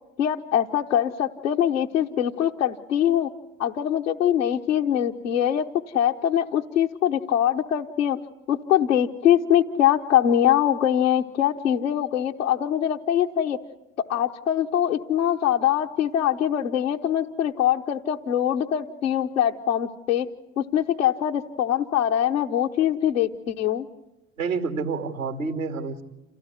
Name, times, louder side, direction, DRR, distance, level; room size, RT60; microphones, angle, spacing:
voice 1, 0.2-3.3 3.6-5.6 5.9-8.2 8.5-13.6 14.0-20.3 20.6-23.9, left 10 dB, 80° left, -1 dB, 1.1 m, -23 dB
voice 2, 24.4-26.0, right 4 dB, 90° right, 5 dB, 2.8 m, -28 dB
28.0 x 17.5 x 9.7 m, 0.98 s
figure-of-eight pair, 65°, 39 cm